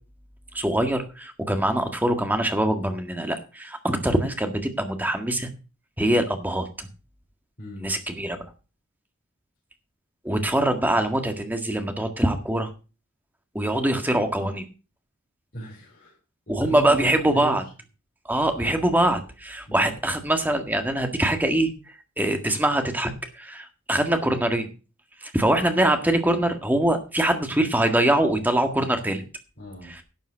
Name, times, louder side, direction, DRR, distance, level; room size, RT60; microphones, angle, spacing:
voice 1, 0.5-5.5 6.0-6.9 7.8-8.4 10.2-12.7 13.6-14.7 16.5-17.6 18.3-21.7 22.2-24.7 25.2-29.2 29.9-30.0, right 1 dB, 10° right, 6 dB, 1.7 m, -23 dB
voice 2, 7.6-7.9 15.5-16.2 16.5-17.6 19.7-19.9 29.6-29.9, equal, 45° left, -7 dB, 5.4 m, -37 dB
11.5 x 7.3 x 6.2 m, 0.33 s
head